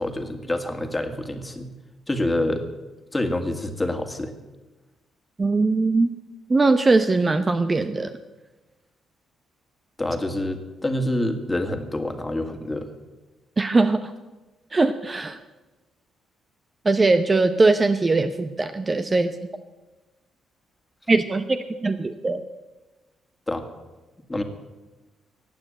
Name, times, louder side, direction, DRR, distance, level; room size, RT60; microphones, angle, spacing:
voice 1, 0.0-1.7 2.1-2.6 3.1-4.3 10.0-12.9 23.5-23.6 24.3-24.4, left 1 dB, 15° left, 6 dB, 2.0 m, -27 dB
voice 2, 5.4-6.1 6.5-8.1 13.6-14.1 14.7-15.4 16.8-19.3 21.1-22.4, right 3 dB, 25° right, 9 dB, 0.8 m, -20 dB
16.0 x 9.0 x 9.0 m, 1.2 s
cardioid pair, 90°, 0 cm